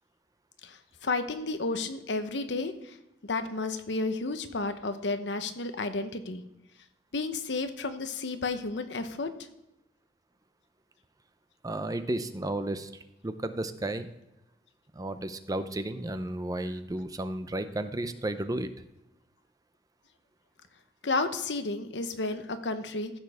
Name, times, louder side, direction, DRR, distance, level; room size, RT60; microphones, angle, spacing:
voice 1, 1.0-2.7 3.2-6.4 7.1-9.3 21.0-23.1, left 3 dB, 90° left, 9 dB, 0.9 m, -32 dB
voice 2, 11.6-12.9 13.2-14.1 15.0-18.7, right 1 dB, 20° right, 10 dB, 0.6 m, -33 dB
15.0 x 6.5 x 3.5 m, 0.89 s
head